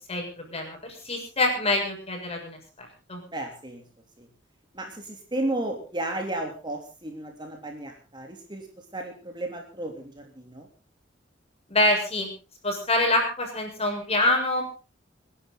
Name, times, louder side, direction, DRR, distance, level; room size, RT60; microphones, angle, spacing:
voice 1, 0.1-3.2 11.7-12.3 12.6-14.6, left 1 dB, 35° left, 2 dB, 6.8 m, -26 dB
voice 2, 3.3-3.8 4.2-4.3 4.7-8.7 8.9-10.7, right 1 dB, 25° right, 2 dB, 3.2 m, -33 dB
27.5 x 11.0 x 4.0 m, 0.34 s
head